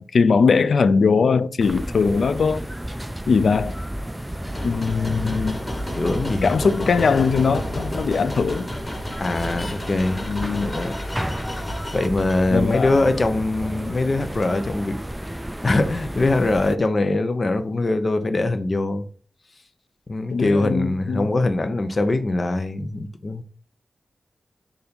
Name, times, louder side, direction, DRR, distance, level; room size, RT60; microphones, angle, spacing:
voice 1, 0.0-2.6 3.3-3.8 4.6-5.6 6.4-8.7 10.3-10.7 12.5-13.0 20.3-21.3, left 5 dB, 75° left, 0.4 m, -20 dB
sound 1, 1.6-16.8, equal, 10° right, 0.3 m, -32 dB
sound 2, 4.1-12.1, left 1 dB, 25° left, 1.5 m, -33 dB
voice 2, 6.0-6.5 9.2-10.2 10.6-10.9 11.9-15.0 15.6-19.0 20.1-23.4, left 2 dB, 45° left, 0.8 m, -22 dB
7.0 x 2.7 x 5.2 m
wide cardioid pair, 80°, 0 cm